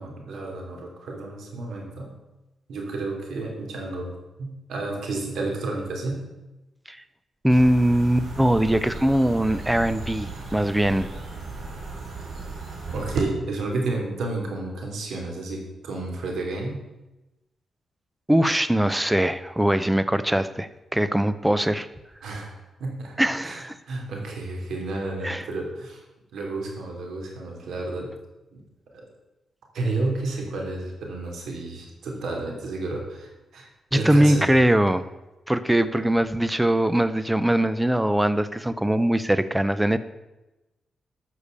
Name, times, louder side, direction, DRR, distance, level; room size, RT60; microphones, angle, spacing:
voice 1, 0.0-2.1 2.7-4.1 4.4-6.2 12.9-16.8 22.2-23.2 23.4-26.0 26.3-28.1 28.5-28.6 29.7-33.7 33.9-34.4, right 2 dB, 80° right, 1 dB, 3.3 m, -31 dB
voice 2, 7.4-11.1 18.3-21.9 23.2-23.7 25.2-25.4 33.9-35.0 35.5-40.0, right 1 dB, 5° right, 14 dB, 0.7 m, -21 dB
sound 1, 7.5-13.2, right 4 dB, 55° right, 3.0 m, -35 dB
12.5 x 6.7 x 6.8 m, 1.0 s
cardioid pair, 115°, 0 cm